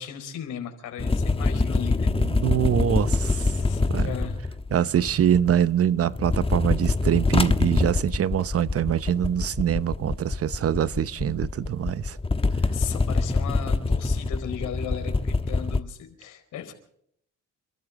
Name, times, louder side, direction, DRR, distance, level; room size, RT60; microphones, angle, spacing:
voice 1, 0.0-2.1 3.1-4.4 12.6-16.7, left 8 dB, 80° left, 4.5 m, -36 dB
sound 1, 1.0-5.7 6.0-15.8, left 3 dB, 20° left, 1.2 m, -25 dB
voice 2, 2.2-3.5 3.9-4.1 4.7-12.2, right 10 dB, 50° right, 0.8 m, -24 dB
29.5 x 13.0 x 3.7 m
cardioid pair, 90°, 30 cm